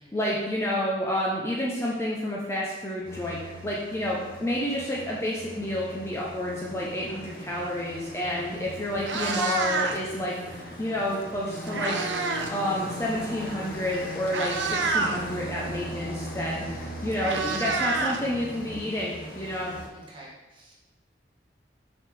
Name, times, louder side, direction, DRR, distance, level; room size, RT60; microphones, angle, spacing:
voice 1, 0.1-12.0 12.5-19.8, left 1 dB, 15° left, -4 dB, 0.6 m, -30 dB
sound 1, 3.0-19.9, equal, 50° left, 0.9 m, -40 dB
voice 2, 8.3-8.6 19.9-20.7, right 1 dB, 25° right, -5 dB, 1.5 m, -50 dB
Meow, 8.4-8.6 8.9-10.2 11.2-12.6 12.9-13.1 13.8-13.9 14.3-15.2 16.5-16.6 16.8-18.7, right 4 dB, 85° right, 0.6 m, -28 dB
5.9 x 5.1 x 3.4 m, 1.1 s
head